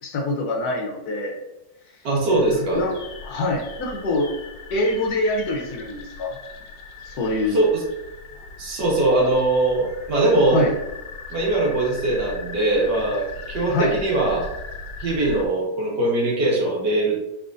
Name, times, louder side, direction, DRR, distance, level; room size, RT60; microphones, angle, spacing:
voice 1, 0.0-1.4 2.7-3.0 3.2-4.3 4.7-6.4 7.0-7.6 10.5-10.7 13.7-14.0, left 2 dB, 65° left, 1 dB, 1.1 m, -24 dB
voice 2, 2.0-2.8 7.5-7.8 8.6-10.6 11.3-14.5 15.0-17.2, right 2 dB, 70° right, -3 dB, 1.9 m, -21 dB
sound 1, 2.3-15.5, left 4 dB, 90° left, 1.4 m, -39 dB
5.0 x 3.5 x 2.5 m, 0.97 s
omnidirectional pair, 1.9 m